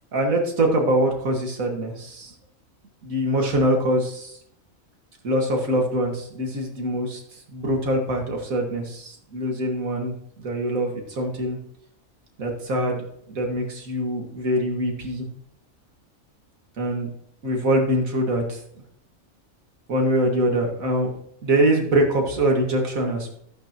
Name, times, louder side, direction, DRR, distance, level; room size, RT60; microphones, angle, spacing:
voice 1, 0.1-2.3 3.0-4.4 5.2-7.2 7.5-11.6 12.4-13.0 13.3-15.3 16.8-17.1 17.4-18.6 19.9-21.1 21.4-23.3, right 1 dB, 85° right, 1 dB, 2.2 m, -23 dB
14.0 x 9.2 x 2.9 m, 0.68 s
omnidirectional pair, 1.4 m